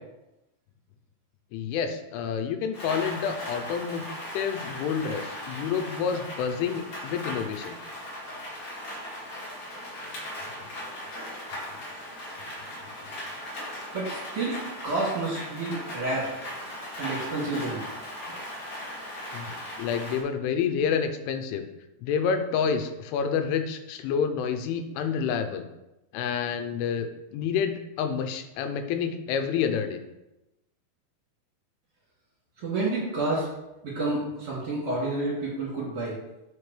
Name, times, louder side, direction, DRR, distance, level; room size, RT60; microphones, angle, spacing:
voice 1, 1.5-4.0 4.3-7.8 19.3-21.7 22.0-25.7 26.1-30.0, left 7 dB, 85° left, 8 dB, 3.2 m, -28 dB
Rain, 2.7-20.2, left 1 dB, 45° left, 2.6 m, -38 dB
voice 2, 13.9-14.6 14.8-16.3 17.0-17.8 32.6-33.5 33.8-36.2, right 2 dB, 40° right, -7 dB, 2.8 m, -29 dB
9.5 x 6.0 x 3.3 m, 0.95 s
omnidirectional pair, 5.4 m